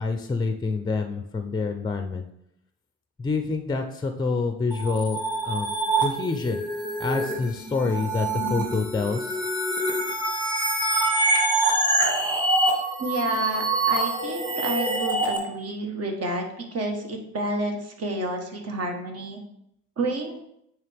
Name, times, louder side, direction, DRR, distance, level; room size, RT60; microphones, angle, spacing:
voice 1, 0.0-2.2 3.2-5.2 5.4-5.7 6.0-6.6 7.0-9.4, left 4 dB, 15° left, 6 dB, 0.5 m, -27 dB
sound 1, 4.7-15.4, right 2 dB, 15° right, 1.7 m, -25 dB
voice 2, 13.0-19.4 20.0-20.4, right 1 dB, 55° right, 2 dB, 1.4 m, -30 dB
8.8 x 3.4 x 3.4 m, 0.76 s
cardioid pair, 90°, 30 cm